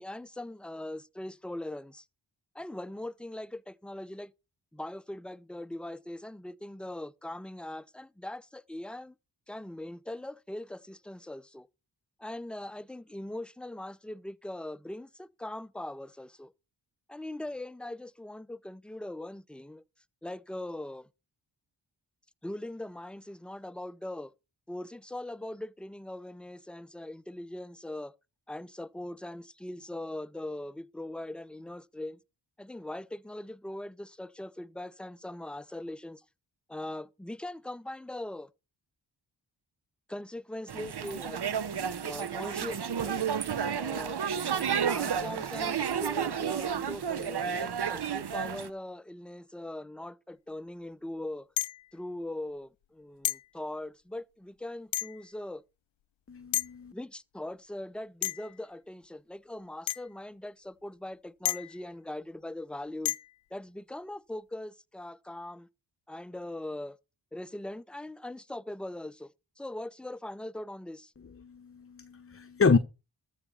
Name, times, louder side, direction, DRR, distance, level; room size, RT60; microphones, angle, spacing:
voice 1, 0.0-2.0 2.5-4.3 4.7-9.1 9.5-11.7 12.2-16.5 17.1-19.8 20.2-21.1 22.4-24.3 24.7-28.1 28.5-32.2 32.6-36.2 36.7-38.5 40.1-41.4 42.0-43.3 43.7-44.2 44.8-51.5 51.9-55.6 56.9-63.1 63.5-65.7 66.1-67.0 67.3-71.1, left 1 dB, ahead, 0.6 m, -41 dB
sound 1, 40.7-48.7, right 7 dB, 55° right, 1.0 m, -31 dB
sound 2, 51.6-51.9 53.2-53.5 54.9-55.3 56.5-56.7 58.2-58.6 59.9-60.1 61.4-61.8 63.0-63.4, left 14 dB, 75° left, 0.6 m, -32 dB
voice 2, 56.3-56.9 71.4-72.8, left 5 dB, 30° left, 0.8 m, -27 dB
13.5 x 5.1 x 6.9 m
cardioid pair, 45°, 47 cm